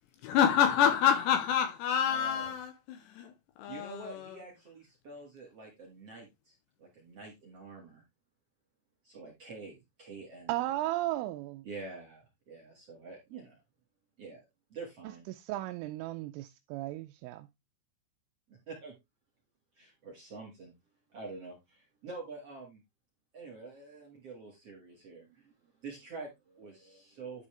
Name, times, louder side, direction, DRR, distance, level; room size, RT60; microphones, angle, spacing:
voice 1, 0.2-4.4, left 8 dB, 80° left, 2.6 m, -28 dB
voice 2, 2.1-2.5 3.7-8.0 9.0-10.7 11.6-13.6 14.2-14.4 14.7-15.3 18.5-18.9 19.7-20.7 21.1-22.8 23.3-27.5, right 3 dB, 60° right, 1.6 m, -47 dB
voice 3, 10.5-11.6 15.3-17.5, right 16 dB, 85° right, 3.1 m, -35 dB
11.0 x 5.5 x 3.3 m
omnidirectional pair, 5.8 m